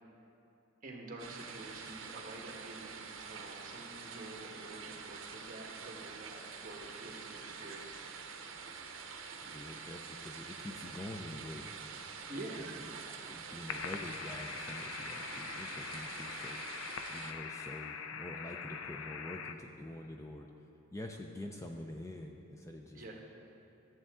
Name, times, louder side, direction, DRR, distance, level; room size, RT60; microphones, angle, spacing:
voice 1, 0.8-8.0 12.3-12.7 22.9-23.1, right 2 dB, 40° right, -1 dB, 1.3 m, -48 dB
sound 1, 1.2-17.3, right 5 dB, 70° right, 0.8 m, -46 dB
voice 2, 9.4-11.7 12.6-23.1, left 1 dB, 15° left, 2 dB, 0.4 m, -46 dB
sound 2, 13.7-19.5, left 6 dB, 80° left, 0.5 m, -43 dB
13.5 x 7.7 x 3.6 m, 2.8 s
head